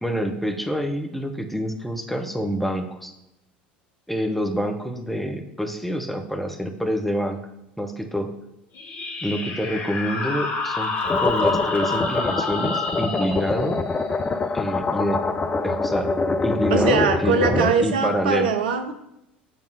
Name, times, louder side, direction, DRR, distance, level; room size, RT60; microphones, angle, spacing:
voice 1, 0.0-3.1 4.1-7.4 7.8-8.3 9.2-10.9 11.2-13.8 14.5-15.2 15.6-18.5, equal, ahead, 4 dB, 1.0 m, -26 dB
sound 1, 8.7-16.0, left 4 dB, 40° left, 1.6 m, -29 dB
sound 2, 11.0-17.7, left 3 dB, 20° left, 0.5 m, -25 dB
voice 2, 16.7-18.9, right 5 dB, 65° right, 8 dB, 0.7 m, -22 dB
7.9 x 3.5 x 6.3 m, 0.85 s
figure-of-eight pair, 70°, 5 cm